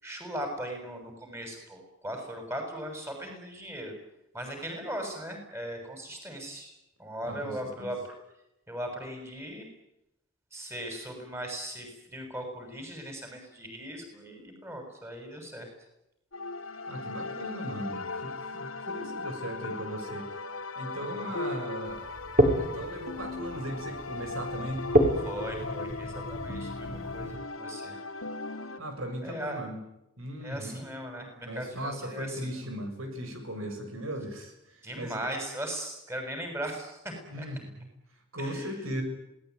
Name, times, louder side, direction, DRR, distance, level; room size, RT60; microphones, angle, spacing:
voice 1, 0.0-3.9 4.3-6.7 7.0-8.0 8.7-9.7 10.5-15.7 20.9-21.4 25.3-28.0 29.2-29.6 30.4-32.7 34.8-37.5 38.4-38.8, right 1 dB, 10° right, 4 dB, 6.9 m, -38 dB
voice 2, 7.2-7.9 16.9-20.2 20.8-22.0 22.6-24.8 28.8-29.8 30.2-30.8 31.5-34.5 35.0-35.3 37.3-37.9 38.3-39.0, equal, 85° right, 6 dB, 6.9 m, -37 dB
sound 1, 16.3-28.8, left 3 dB, 85° left, 2.8 m, -38 dB
sound 2, 21.8-27.4, right 1 dB, 40° right, 5.8 m, -29 dB
27.0 x 19.0 x 9.6 m, 0.86 s
head